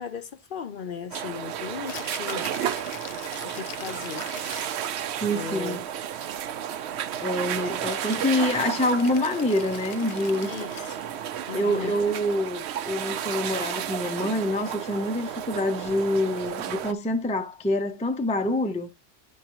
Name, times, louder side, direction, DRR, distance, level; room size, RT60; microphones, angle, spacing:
voice 1, 0.0-2.5 3.4-4.3 5.3-5.8 10.5-11.0 11.5-12.1, left 7 dB, 55° left, 0.7 m, -37 dB
sound 1, 1.1-16.9, right 9 dB, 75° right, 0.8 m, -32 dB
Rattle (instrument), 1.7-4.9 7.9-11.1, left 9 dB, 85° left, 0.9 m, -43 dB
voice 2, 5.2-5.9 7.2-10.9 11.5-18.9, left 1 dB, 10° left, 0.4 m, -26 dB
11.0 x 4.5 x 3.0 m
omnidirectional pair, 1.2 m